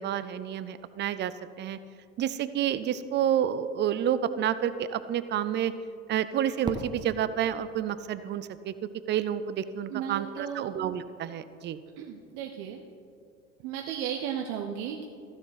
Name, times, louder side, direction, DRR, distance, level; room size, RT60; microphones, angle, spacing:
voice 1, 0.0-1.8 2.2-5.7 6.1-8.7 9.1-11.8, right 10 dB, 30° right, 14 dB, 0.5 m, -29 dB
Fireworks, 6.6-9.5, right 2 dB, 10° right, 0.9 m, -41 dB
voice 2, 9.9-10.7 12.0-12.8 13.6-15.1, right 9 dB, 55° right, 2 dB, 0.8 m, -34 dB
14.5 x 6.9 x 4.0 m, 2.3 s
figure-of-eight pair, 60°, 39 cm